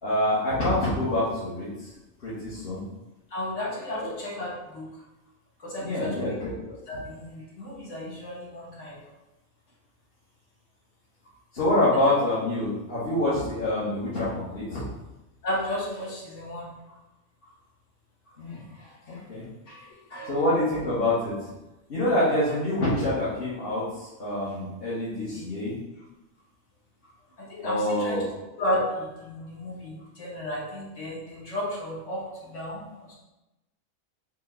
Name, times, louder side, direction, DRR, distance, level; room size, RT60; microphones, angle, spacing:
voice 1, 0.0-1.9 2.2-2.8 4.0-4.1 5.8-6.8 11.5-14.8 18.4-18.6 19.1-19.4 20.3-21.3 21.9-25.7 27.6-28.3, left 1 dB, 45° left, -11 dB, 1.1 m, -26 dB
voice 2, 3.3-4.9 5.6-6.4 6.9-9.0 15.4-16.7 18.8-18.9 19.7-20.3 25.2-25.5 27.4-28.2 28.6-32.9, left 1 dB, 65° left, -5 dB, 1.2 m, -33 dB
4.3 x 2.1 x 4.2 m, 1.0 s
omnidirectional pair, 1.4 m